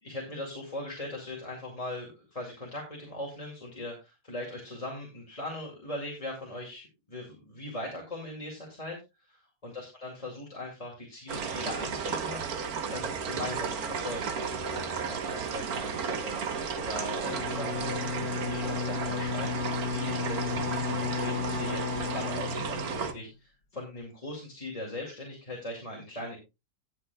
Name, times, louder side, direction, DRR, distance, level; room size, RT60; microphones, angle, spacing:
voice 1, 0.0-12.4 12.9-16.4 16.8-26.4, left 1 dB, 20° left, -2 dB, 2.3 m, -40 dB
sound 1, 11.3-23.1, right 6 dB, 65° right, 1.5 m, -34 dB
Bowed string instrument, 17.2-23.3, left 7 dB, 80° left, 2.0 m, -34 dB
19.0 x 6.5 x 2.3 m, 0.25 s
omnidirectional pair, 1.8 m